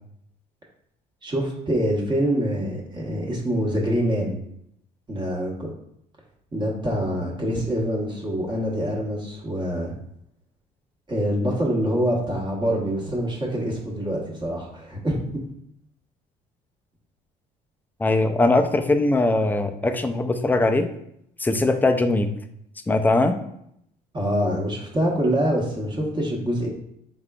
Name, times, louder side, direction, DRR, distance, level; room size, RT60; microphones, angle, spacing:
voice 1, 1.2-4.4 5.1-5.7 6.5-9.9 11.1-15.2 24.1-26.7, equal, 25° right, -2 dB, 1.0 m, -25 dB
voice 2, 18.0-20.9 21.4-22.3 22.9-23.4, left 2 dB, 10° left, 6 dB, 0.4 m, -20 dB
4.6 x 3.6 x 2.3 m, 0.75 s
cardioid pair, 110°, 17 cm